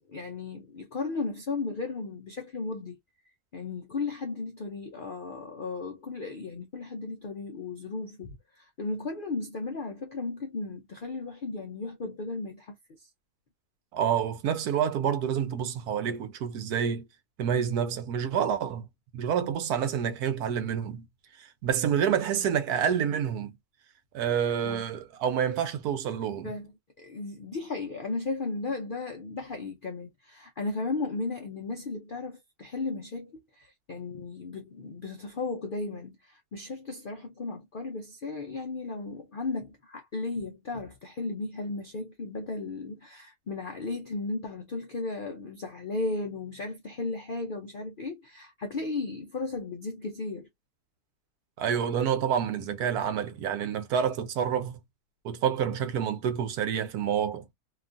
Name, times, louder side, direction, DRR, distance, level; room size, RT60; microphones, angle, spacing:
voice 1, 0.0-3.0 3.5-12.8 24.6-24.8 26.4-26.7 27.0-50.5, left 3 dB, 65° left, 0.5 m, -35 dB
voice 2, 13.9-17.0 17.4-18.8 19.1-21.1 21.4-23.5 24.1-26.5 51.6-54.8 55.2-57.4, right 8 dB, 80° right, 1.2 m, -28 dB
2.9 x 2.3 x 2.5 m
omnidirectional pair, 1.6 m